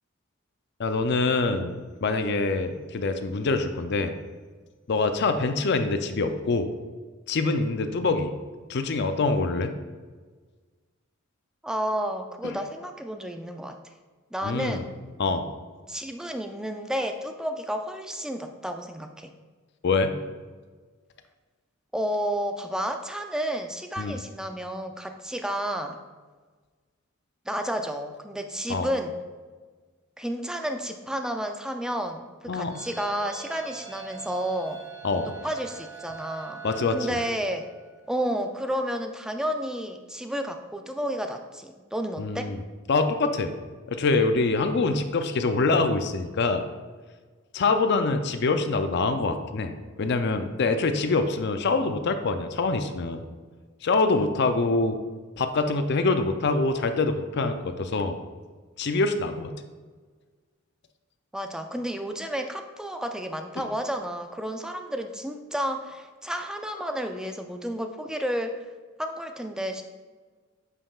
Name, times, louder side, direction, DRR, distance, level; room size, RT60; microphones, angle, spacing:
voice 1, 0.8-1.8 2.0-4.1 4.9-6.7 7.3-8.3 8.7-9.7 12.4-12.6 14.4-14.8 15.2-15.5 19.8-20.1 24.0-24.2 28.7-28.9 32.5-32.7 35.0-35.3 36.6-37.2 42.2-42.6 42.9-43.5 43.9-46.6 47.5-53.2 53.8-55.0 55.4-58.2 58.8-59.5, left 3 dB, 55° left, 8 dB, 0.5 m, -25 dB
voice 2, 11.6-13.8 14.3-14.9 15.9-19.3 21.9-26.0 27.5-29.2 30.2-34.8 35.3-36.6 36.9-37.6 38.1-42.5 61.3-68.6 69.0-69.8, equal, 5° right, 5 dB, 0.4 m, -31 dB
sound 1, 32.7-38.1, right 6 dB, 20° right, 1.6 m, -43 dB
8.3 x 5.4 x 2.4 m, 1.4 s
head